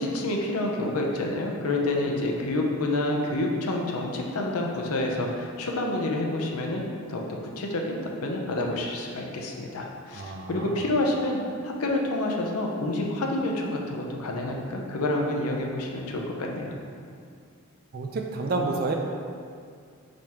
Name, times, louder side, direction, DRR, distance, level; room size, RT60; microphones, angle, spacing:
voice 1, 0.0-6.8 7.1-7.2 7.6-11.4 11.6-16.7, left 2 dB, 80° left, 0 dB, 0.6 m, -28 dB
voice 2, 10.1-10.8 17.9-18.9, right 3 dB, 45° right, 1 dB, 0.3 m, -29 dB
5.0 x 3.5 x 2.9 m, 2.2 s
head